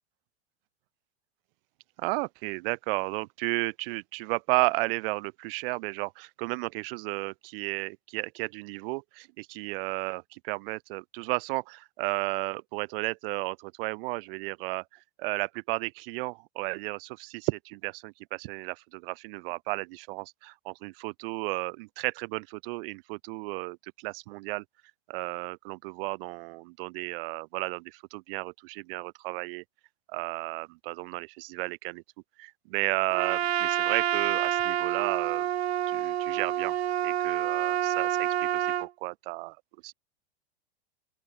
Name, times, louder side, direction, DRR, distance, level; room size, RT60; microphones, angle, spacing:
voice 1, 2.0-14.8 15.2-24.6 25.1-29.6 30.1-32.0 32.4-35.5 35.9-36.7 37.0-39.6 39.8-39.9, right 25 dB, 55° right, 6.5 m, -33 dB
Trumpet, 33.1-38.9, right 11 dB, 75° right, 2.9 m, -28 dB
open air
hypercardioid pair, 100°, 33 cm